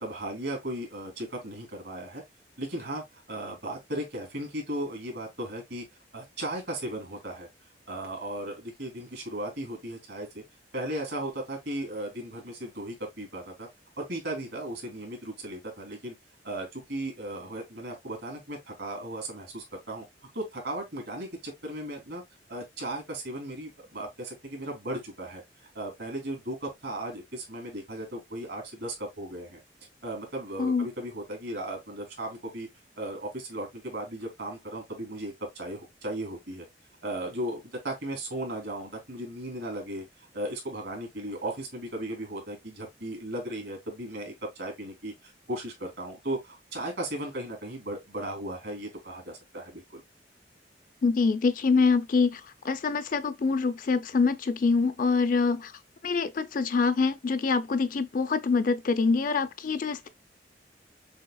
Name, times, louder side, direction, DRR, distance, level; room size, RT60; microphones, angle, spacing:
voice 1, 0.0-2.2 2.6-5.8 6.1-7.5 7.9-10.4 10.7-13.7 14.0-16.1 16.4-20.1 20.3-22.2 22.5-25.4 25.7-29.6 30.0-32.7 33.0-36.7 37.0-40.1 40.3-50.0, right 1 dB, 75° right, 2.6 m, -36 dB
voice 2, 51.0-55.7 56.0-60.1, left 4 dB, 50° left, 0.5 m, -25 dB
6.4 x 2.8 x 2.3 m
head